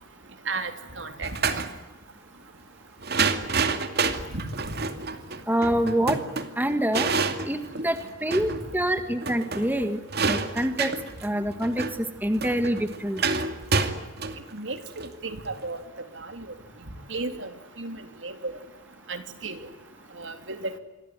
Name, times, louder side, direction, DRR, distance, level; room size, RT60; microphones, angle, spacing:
voice 1, 1.0-1.3 4.3-4.8 14.5-15.8 16.1-16.5 17.1-17.5 17.8-18.0 18.2-18.5 19.1-19.6 20.2-20.8, right 3 dB, 70° right, 8 dB, 3.4 m, -34 dB
sound 1, 1.2-1.7 3.0-8.6 8.9-9.0 9.2-15.7, right 4 dB, 55° right, 2.5 m, -28 dB
voice 2, 5.5-6.2 6.6-7.1 7.5-10.0 10.3-10.9 11.2-13.2, right 1 dB, 10° right, 8 dB, 1.9 m, -26 dB
28.0 x 23.0 x 9.4 m, 1.0 s
head